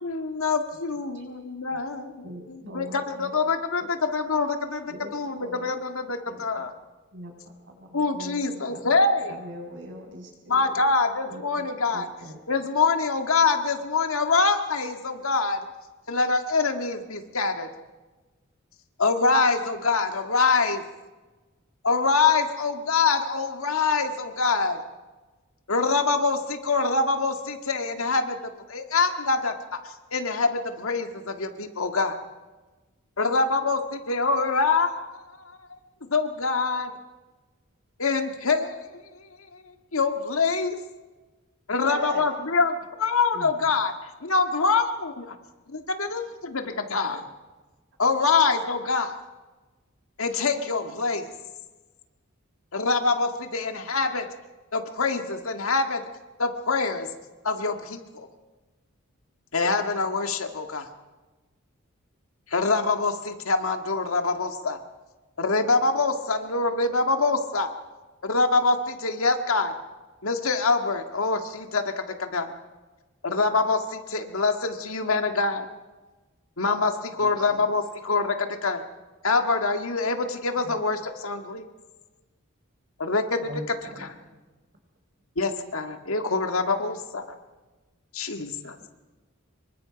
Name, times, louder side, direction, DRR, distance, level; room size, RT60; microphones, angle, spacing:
voice 1, 0.0-6.7 7.9-9.4 10.5-12.1 12.5-15.7 16.1-17.7 19.0-20.8 21.8-24.8 25.7-28.4 28.7-29.5 30.1-32.2 33.2-35.1 36.1-36.9 38.0-38.8 39.9-40.8 41.7-43.9 44.2-45.3 45.7-47.2 48.0-49.1 50.2-51.3 52.7-54.3 54.7-56.0 56.4-57.1 57.4-58.3 59.5-60.9 62.5-64.8 65.4-67.7 68.2-69.7 70.2-72.5 73.2-75.7 76.6-78.8 79.2-81.7 83.0-83.5 85.4-87.2 88.1-88.7, left 4 dB, 75° left, 6 dB, 1.9 m, -25 dB
voice 2, 2.2-3.3 3.8-3.9 4.9-5.7 6.3-6.4 7.1-7.3 7.7-9.0 9.3-10.8 11.3-12.4 41.7-42.2 43.3-43.5, right 1 dB, 60° right, 1 dB, 6.4 m, -41 dB
voice 3, 77.2-77.7 80.6-80.8 83.4-84.4, equal, 45° right, 4 dB, 4.1 m, -41 dB
26.5 x 23.5 x 5.2 m, 1.2 s
head